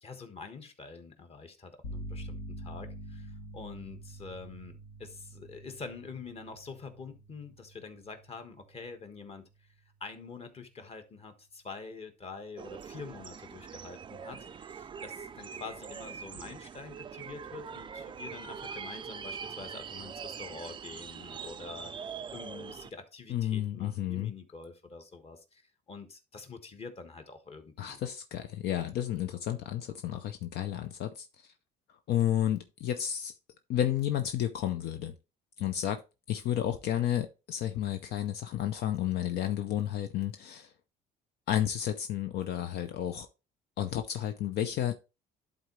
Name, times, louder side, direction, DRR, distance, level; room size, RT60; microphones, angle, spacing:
voice 1, 0.0-9.5 10.0-25.6 25.9-28.0, left 4 dB, 35° left, 1.4 m, -46 dB
sound 1, 1.8-9.6, right 1 dB, 90° left, 1.4 m, -46 dB
sound 2, 12.6-22.9, right 6 dB, 30° right, 0.4 m, -43 dB
voice 2, 23.3-24.3 27.8-31.5 32.1-33.3 33.7-35.2 35.6-36.0 36.3-40.7 41.5-43.3 43.8-44.9, left 11 dB, 70° left, 0.6 m, -31 dB
11.0 x 3.9 x 3.1 m
cardioid pair, 110°, 17 cm